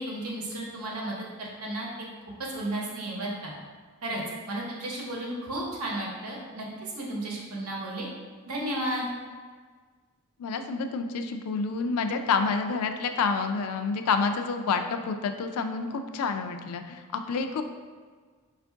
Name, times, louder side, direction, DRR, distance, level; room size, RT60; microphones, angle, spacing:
voice 1, 0.0-1.9 2.5-3.5 4.0-4.2 4.5-8.1 8.5-9.1, right 1 dB, 90° right, -3 dB, 0.9 m, -33 dB
voice 2, 10.4-17.6, left 4 dB, 90° left, 7 dB, 0.4 m, -28 dB
4.4 x 2.4 x 3.4 m, 1.5 s
head